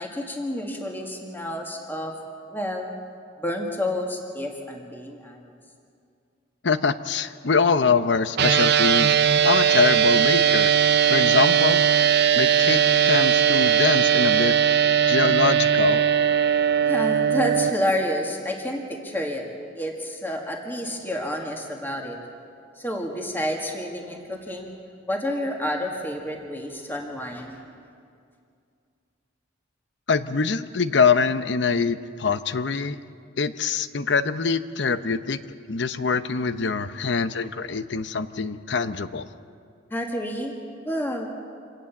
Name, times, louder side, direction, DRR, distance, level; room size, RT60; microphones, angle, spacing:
voice 1, 0.0-2.1 2.5-2.9 3.4-5.6 16.8-19.4 19.7-22.2 22.8-24.7 25.1-27.6 39.9-40.5 40.8-41.3, left 1 dB, 10° left, 1 dB, 1.9 m, -29 dB
voice 2, 6.6-9.1 9.4-10.7 11.1-11.9 12.4-12.8 13.1-14.5 15.1-16.0 30.1-33.0 33.4-35.4 35.7-39.3, left 5 dB, 65° left, 12 dB, 0.8 m, -24 dB
sound 1, 8.4-17.7, right 8 dB, 60° right, 0.6 m, -19 dB
26.5 x 18.0 x 7.2 m, 2.3 s
head